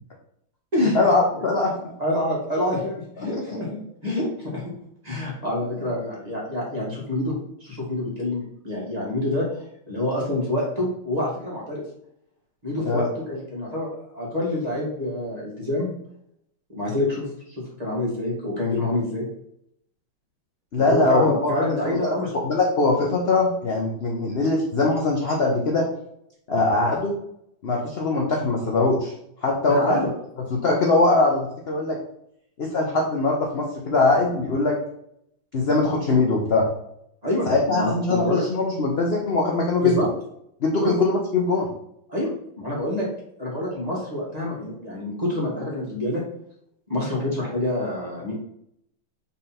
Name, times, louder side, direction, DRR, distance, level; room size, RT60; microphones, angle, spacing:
voice 1, 0.8-1.7 3.3-3.4 12.8-13.1 20.7-21.5 21.8-22.0 22.4-25.8 26.5-27.1 27.6-29.1 29.4-30.1 30.5-32.0 32.6-34.8 35.5-36.6 37.5-39.9 40.6-41.7, left 3 dB, 55° left, -1 dB, 0.6 m, -21 dB
voice 2, 1.8-4.6 5.0-7.3 7.6-11.8 12.6-13.9 14.1-15.9 16.7-17.3 17.6-19.2 20.7-22.3 26.5-27.0 29.7-30.1 37.2-38.5 39.8-40.1 40.8-40.9 42.1-42.3 42.6-43.1 43.4-46.2 46.9-48.3, left 1 dB, 20° right, -5 dB, 1.7 m, -27 dB
5.6 x 4.1 x 4.3 m, 0.74 s
omnidirectional pair, 2.3 m